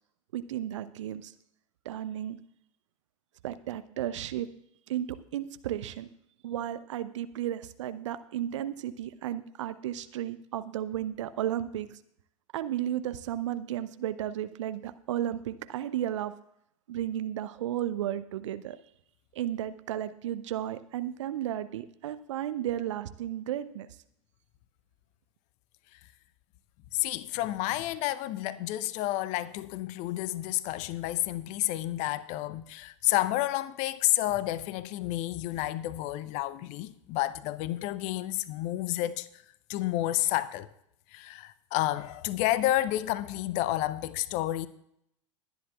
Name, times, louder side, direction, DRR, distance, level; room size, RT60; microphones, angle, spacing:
voice 1, 0.3-1.3 1.8-2.4 3.4-4.5 4.9-5.1 5.3-6.1 6.4-11.9 12.5-16.3 16.9-18.8 19.3-23.9, right 11 dB, 65° right, 0.7 m, -33 dB
voice 2, 26.9-39.3 39.7-40.7 41.1-44.7, left 15 dB, 45° left, 0.7 m, -30 dB
21.5 x 10.0 x 2.4 m
figure-of-eight pair, 85°, 17 cm